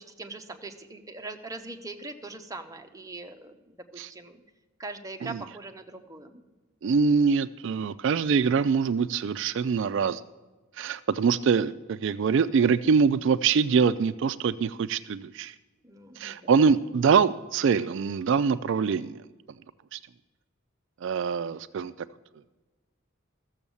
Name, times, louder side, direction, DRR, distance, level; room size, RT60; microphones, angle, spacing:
voice 1, 0.0-4.4 4.8-6.4 15.8-16.5, right 3 dB, 15° right, 4 dB, 0.7 m, -41 dB
voice 2, 6.8-10.2 10.8-15.5 16.2-19.2 19.9-20.0 21.0-21.9, right 6 dB, 55° right, 14 dB, 0.3 m, -24 dB
13.5 x 7.2 x 7.0 m, 1.2 s
head